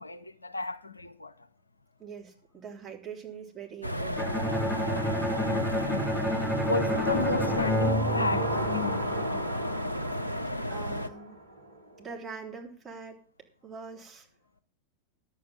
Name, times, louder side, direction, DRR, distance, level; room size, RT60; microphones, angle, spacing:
voice 1, 0.0-1.3 5.4-6.1 6.6-9.1, left 3 dB, 80° left, 0.7 m, -33 dB
voice 2, 2.0-4.4 10.7-11.4 12.0-13.2 13.6-14.3, right 6 dB, 20° right, 3.5 m, -43 dB
sound 1, 3.8-11.1, equal, 90° right, 0.6 m, -33 dB
Bowed string instrument, 4.2-9.1, equal, ahead, 0.6 m, -30 dB
sound 2, 6.9-11.8 12.1-12.2, right 1 dB, 70° right, 1.7 m, -34 dB
10.5 x 8.4 x 7.4 m
figure-of-eight pair, 90°, 0 cm